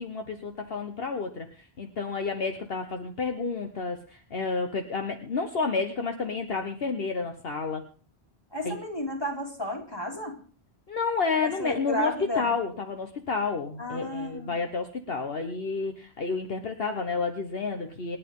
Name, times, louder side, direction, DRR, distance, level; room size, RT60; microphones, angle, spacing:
voice 1, 0.0-7.8 8.6-8.8 10.9-18.2, left 4 dB, 60° left, 5 dB, 1.4 m, -30 dB
voice 2, 8.5-10.4 11.4-12.5 13.8-14.6, equal, 25° left, 0 dB, 3.7 m, -32 dB
28.0 x 9.9 x 3.7 m, 0.40 s
omnidirectional pair, 1.1 m